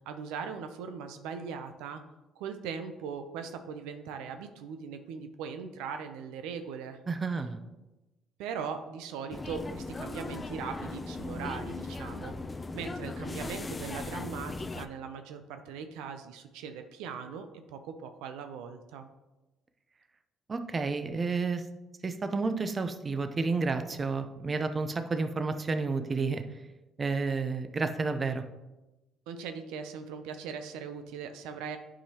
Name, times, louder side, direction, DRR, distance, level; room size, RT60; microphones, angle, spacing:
voice 1, 0.1-2.0 2.4-7.0 8.4-12.3 12.7-19.1 29.3-31.8, right 6 dB, 90° right, 8 dB, 0.5 m, -40 dB
voice 2, 7.1-7.6 20.5-21.6 22.0-26.4 27.0-28.4, right 4 dB, 30° right, 8 dB, 0.6 m, -30 dB
sound 1, 9.3-14.9, left 3 dB, 25° left, 0.4 m, -38 dB
10.0 x 4.8 x 2.9 m, 1.1 s
supercardioid pair, 85°, 0 cm